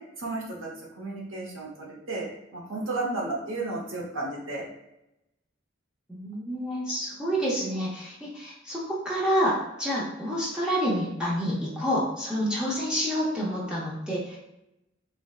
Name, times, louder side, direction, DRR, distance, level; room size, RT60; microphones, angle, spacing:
voice 1, 0.2-0.7 1.0-4.7, right 2 dB, 85° right, -3 dB, 0.9 m, -33 dB
voice 2, 6.1-14.4, equal, 5° right, -7 dB, 0.6 m, -28 dB
3.4 x 3.2 x 2.3 m, 0.90 s
head